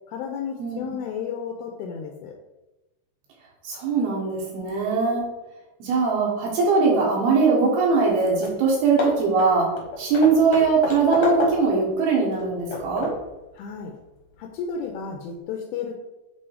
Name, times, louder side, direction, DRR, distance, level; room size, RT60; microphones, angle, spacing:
voice 1, 0.1-2.3 13.5-14.0 14.4-16.0, left 6 dB, 80° left, 2 dB, 2.4 m, -32 dB
voice 2, 3.6-5.2 5.8-9.7 10.0-13.1, right 4 dB, 70° right, -3 dB, 3.4 m, -21 dB
Hammer / Wood, 8.1-8.2 8.4-8.6 9.0-11.8 12.3-13.3, left 2 dB, 65° left, 1.7 m, -31 dB
8.2 x 2.8 x 4.8 m, 1.0 s
omnidirectional pair, 4.7 m